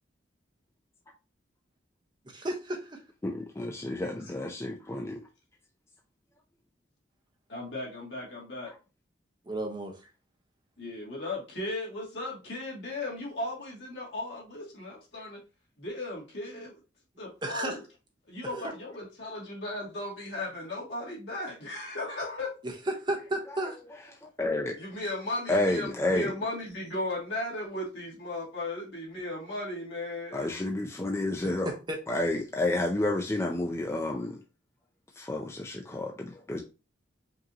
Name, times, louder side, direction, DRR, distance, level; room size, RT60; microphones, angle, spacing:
voice 1, 2.3-3.0 9.4-10.1 17.4-17.8 22.6-23.8 31.6-32.0, right 1 dB, 25° right, 0.8 m, -33 dB
voice 2, 3.2-5.2 23.5-23.6 24.2-24.8 25.5-26.3 30.3-31.7 32.1-34.4 35.2-36.6, left 2 dB, 15° left, 0.4 m, -30 dB
voice 3, 7.5-8.7 10.8-15.4 15.8-16.8 17.2-17.8 18.3-22.6 24.8-30.6, left 2 dB, 70° left, 2.2 m, -36 dB
5.2 x 2.8 x 2.7 m
head